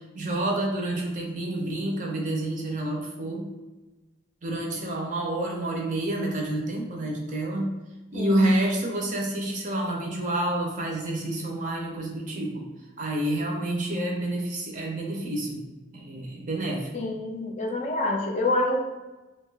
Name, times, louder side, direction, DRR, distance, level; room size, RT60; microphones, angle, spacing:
voice 1, 0.1-3.4 4.4-7.7 8.1-12.7 13.0-15.6 15.9-16.9, right 1 dB, 40° right, -1 dB, 0.6 m, -28 dB
voice 2, 8.1-8.5 16.9-18.8, left 2 dB, 40° left, 2 dB, 0.4 m, -27 dB
2.7 x 2.3 x 3.2 m, 1.1 s
head